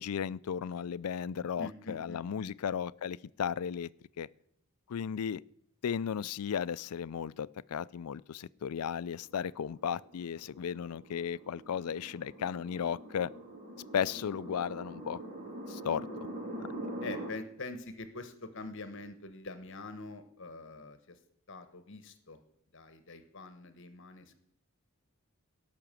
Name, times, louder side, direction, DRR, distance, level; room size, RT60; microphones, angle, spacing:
voice 1, 0.0-3.9 4.2-4.3 4.9-5.4 5.8-13.3 13.9-15.2 15.7-16.1, left 7 dB, 85° left, 0.4 m, -35 dB
voice 2, 1.6-2.5 17.0-21.2 21.5-22.4 22.7-24.4, left 3 dB, 55° left, 1.2 m, -45 dB
sound 1, 9.2-17.3, right 1 dB, 35° right, 2.4 m, -44 dB
17.5 x 6.0 x 7.5 m
head